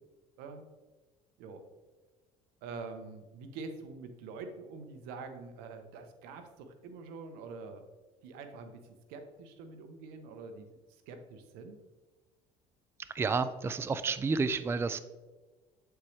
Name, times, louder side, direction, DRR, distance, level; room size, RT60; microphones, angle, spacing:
voice 1, 2.6-7.8 8.2-8.8 9.1-10.8 11.1-11.8, right 4 dB, 80° right, 7 dB, 0.9 m, -45 dB
voice 2, 13.1-15.0, right 4 dB, 15° right, 12 dB, 0.3 m, -30 dB
8.3 x 4.5 x 3.2 m, 1.3 s
supercardioid pair, 85°, 16 cm